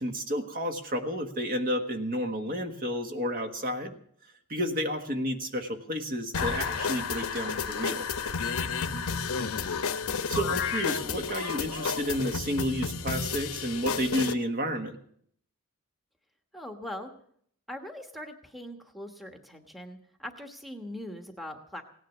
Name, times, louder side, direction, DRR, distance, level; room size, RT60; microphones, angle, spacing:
voice 1, 0.0-4.0 4.5-8.1 10.3-15.0, equal, 40° right, 5 dB, 1.5 m, -31 dB
sound 1, 6.3-14.3, left 6 dB, 70° left, 0.9 m, -31 dB
voice 2, 8.9-9.6 16.5-17.1 17.7-21.8, left 1 dB, ahead, 4 dB, 1.2 m, -41 dB
17.5 x 10.0 x 7.3 m, 0.64 s
head